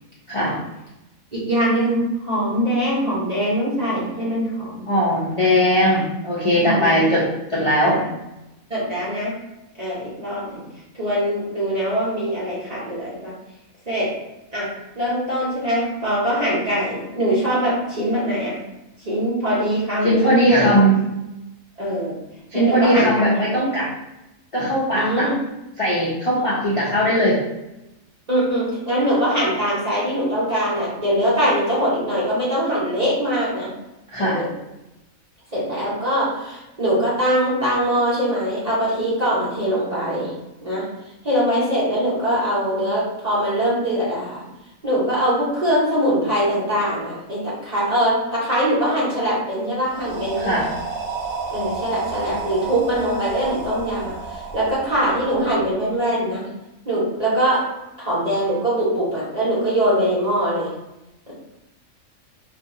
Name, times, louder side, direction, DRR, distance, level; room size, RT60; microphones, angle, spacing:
voice 1, 1.3-4.9 5.9-6.0 6.5-7.1 7.8-8.0 8.7-9.4 9.8-10.7 10.9-13.3 13.9-14.2 14.5-18.6 19.0-20.7 21.8-22.2 22.5-23.2 24.9-25.4 28.3-33.7 34.2-34.5 35.5-40.3 40.6-40.9 41.2-44.4 44.8-50.6 51.5-56.5 56.8-57.7 58.0-60.7 61.3-61.4, equal, 40° right, -7 dB, 0.7 m, -22 dB
voice 2, 4.9-8.0 20.0-21.0 22.5-23.9 24.5-25.3 25.8-27.4 34.1-34.4 50.4-50.7, equal, 45° left, -8 dB, 0.4 m, -19 dB
sound 1, 49.9-55.8, right 5 dB, 80° right, 1.0 m, -31 dB
2.7 x 2.5 x 3.6 m, 0.94 s
omnidirectional pair, 1.5 m